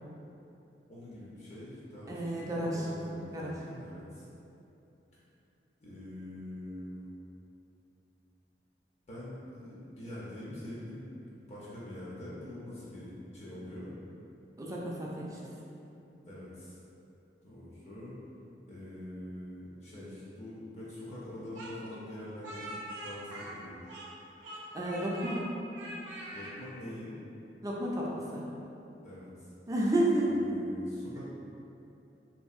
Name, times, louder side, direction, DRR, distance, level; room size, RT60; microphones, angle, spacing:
voice 1, 0.9-4.3 5.8-7.1 9.1-11.1 11.5-13.9 16.2-16.8 17.4-18.2 18.7-22.7 23.0-23.8 26.3-27.1 29.0-29.5 30.2-31.3, left 1 dB, 40° left, -8 dB, 0.5 m, -44 dB
voice 2, 2.1-2.9 3.3-3.5 14.6-15.4 24.5-25.5 27.6-28.4 29.7-30.3, right 1 dB, 20° right, -4 dB, 0.3 m, -31 dB
Speech, 21.5-24.2 24.4-25.4 25.7-26.5, right 1 dB, 85° right, 0.5 m, -43 dB
2.7 x 2.6 x 2.4 m, 2.8 s
head